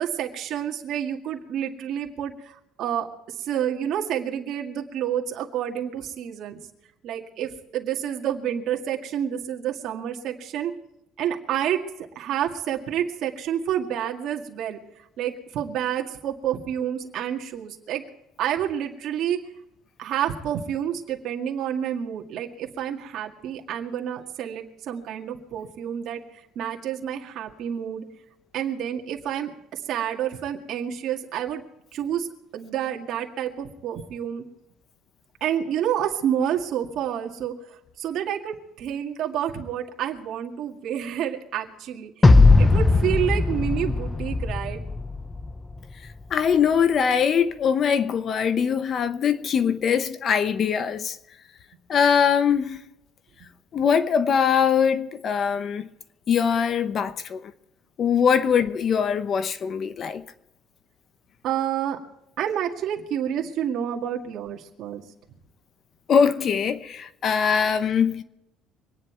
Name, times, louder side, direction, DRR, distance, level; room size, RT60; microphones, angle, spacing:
voice 1, 0.0-3.1 3.4-6.6 7.0-10.7 11.2-11.8 12.2-14.8 15.2-18.0 18.4-19.4 20.0-26.2 26.6-28.0 28.5-31.6 31.9-34.4 35.4-37.6 38.0-42.1 42.6-44.8 61.4-62.0 62.4-65.0, right 10 dB, 55° right, 2.0 m, -29 dB
sound 1, 42.2-45.5, left 3 dB, 15° left, 0.6 m, -18 dB
voice 2, 46.3-51.2 51.9-52.8 53.7-55.9 56.3-57.4 58.0-60.2 66.1-68.2, left 7 dB, 40° left, 0.8 m, -22 dB
25.0 x 10.0 x 4.6 m
cardioid pair, 130°, 0 cm